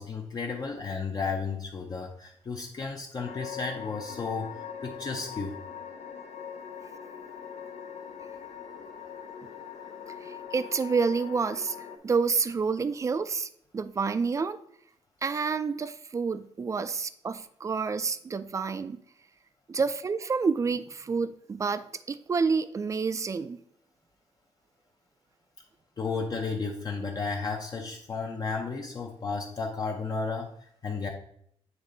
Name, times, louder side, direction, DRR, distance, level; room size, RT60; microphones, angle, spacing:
voice 1, 0.0-5.6 26.0-31.1, left 4 dB, 35° left, 0 dB, 0.6 m, -33 dB
sound 1, 3.2-12.0, left 8 dB, 80° left, 0.7 m, -42 dB
voice 2, 10.2-11.8 12.0-14.6 15.2-19.0 19.7-23.6, right 5 dB, 30° right, 13 dB, 0.3 m, -29 dB
8.1 x 3.2 x 3.8 m, 0.68 s
wide cardioid pair, 135°, 11 cm